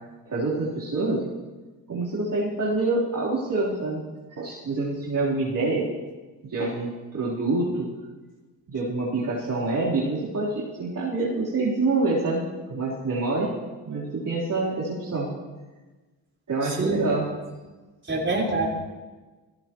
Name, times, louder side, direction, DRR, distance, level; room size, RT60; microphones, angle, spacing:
voice 1, 0.3-1.2 1.9-4.0 4.3-5.9 6.4-7.9 8.7-12.4 12.7-13.5 13.8-15.3 16.5-17.3, right 3 dB, 45° right, -8 dB, 3.7 m, -26 dB
voice 2, 16.6-17.0 18.1-18.7, right 2 dB, 25° right, -3 dB, 4.5 m, -25 dB
16.0 x 15.0 x 3.0 m, 1.2 s
supercardioid pair, 55°, 44 cm